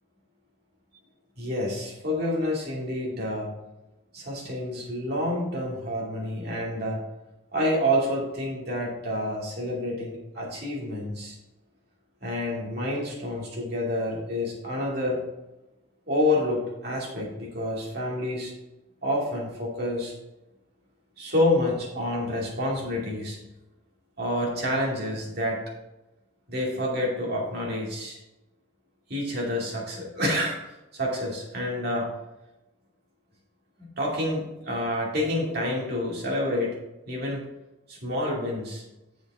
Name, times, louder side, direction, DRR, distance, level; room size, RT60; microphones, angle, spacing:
voice 1, 1.4-3.5 4.1-7.0 7.5-11.4 12.2-15.2 16.1-18.5 19.0-20.1 21.2-23.4 24.2-25.6 26.5-28.2 29.1-30.6 30.9-32.1 34.0-36.7 37.1-37.4 37.9-38.8, left 1 dB, 50° right, -3 dB, 2.6 m, -28 dB
7.9 x 6.8 x 3.7 m, 0.97 s
head